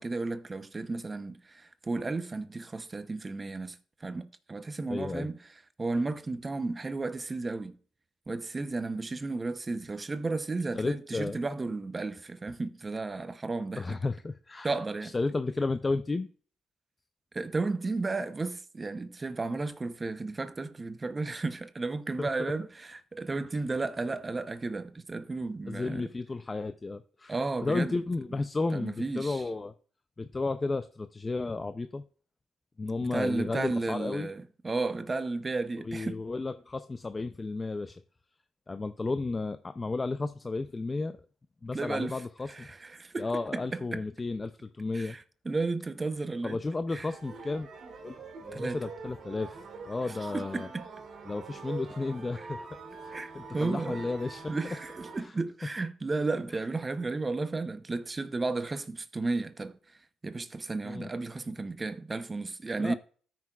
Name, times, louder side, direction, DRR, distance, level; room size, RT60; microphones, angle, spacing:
voice 1, 0.0-5.4 5.8-7.8 8.3-14.0 14.6-15.1 17.3-26.0 27.3-28.0 28.7-29.4 33.1-36.2 41.7-42.2 42.5-44.0 44.9-46.6 46.9-47.1 48.5-48.8 50.3-50.8 52.4-52.5 53.1-54.1 54.5-59.8 60.2-62.9, right 3 dB, 25° right, 0.8 m, -33 dB
voice 2, 4.9-5.3 10.7-11.4 13.8-14.7 15.0-16.3 22.2-22.5 25.7-29.7 30.2-32.0 32.8-34.3 35.8-38.0 38.7-41.2 41.6-42.7 43.2-45.2 46.4-47.7 48.0-49.6 49.9-50.7 51.3-52.8 53.3-54.4 55.2-55.3 60.8-61.1 62.8-62.9, left 3 dB, 25° left, 0.5 m, -33 dB
sound 1, 47.1-55.2, right 4 dB, 60° right, 2.7 m, -44 dB
13.5 x 6.0 x 2.4 m
cardioid pair, 90°, 0 cm